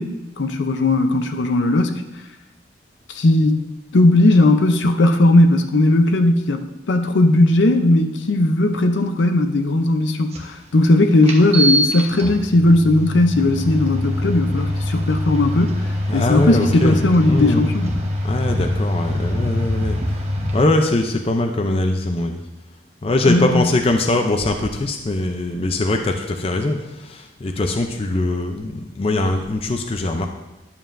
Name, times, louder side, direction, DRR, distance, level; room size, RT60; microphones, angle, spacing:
voice 1, 0.0-2.0 3.1-3.6 3.9-18.0 23.2-23.7, left 2 dB, 80° left, 6 dB, 0.6 m, -17 dB
sound 1, 10.3-10.4 11.2-20.6, equal, 35° right, 1.0 m, -24 dB
voice 2, 16.1-17.0 17.3-17.7 18.2-20.2 20.5-22.4 23.0-30.2, left 2 dB, 30° left, 4 dB, 0.5 m, -21 dB
11.0 x 7.2 x 2.6 m, 1.0 s
head